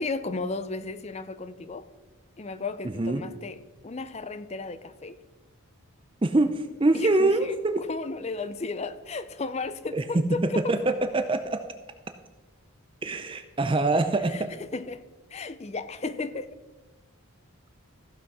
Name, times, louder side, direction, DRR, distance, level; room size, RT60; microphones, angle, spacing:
voice 1, 0.0-1.9 2.4-3.6 3.8-5.2 6.9-10.7 14.3-16.5, left 3 dB, 30° left, 13 dB, 0.5 m, -34 dB
voice 2, 6.2-6.5 6.8-7.8 9.9-10.0 10.7-11.6 13.0-14.5, right 2 dB, 25° right, 8 dB, 0.5 m, -24 dB
14.5 x 6.0 x 5.5 m, 1.2 s
head